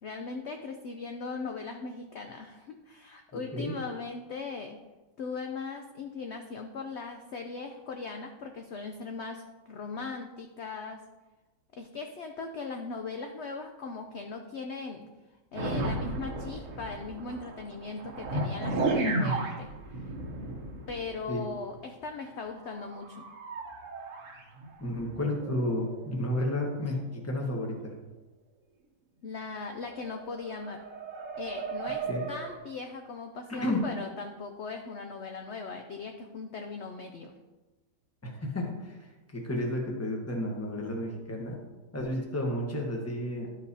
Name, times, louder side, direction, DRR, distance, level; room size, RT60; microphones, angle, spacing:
voice 1, 0.0-4.8 5.2-11.0 11.7-15.1 15.5-19.7 20.9-23.3 29.2-30.8 31.4-37.3, left 4 dB, 90° left, 5 dB, 0.6 m, -39 dB
voice 2, 3.3-3.7 21.3-21.4 24.8-27.9 32.1-32.3 33.5-33.8 38.2-41.6 41.9-43.5, left 1 dB, 10° left, 0 dB, 0.8 m, -32 dB
sound 1, 15.6-21.4 21.7-21.8 22.1-22.2 22.6-26.3 26.9-27.1 27.4-27.7 29.9-32.6, right 2 dB, 55° right, 1.1 m, -34 dB
11.5 x 5.1 x 2.7 m, 1.1 s
omnidirectional pair, 1.8 m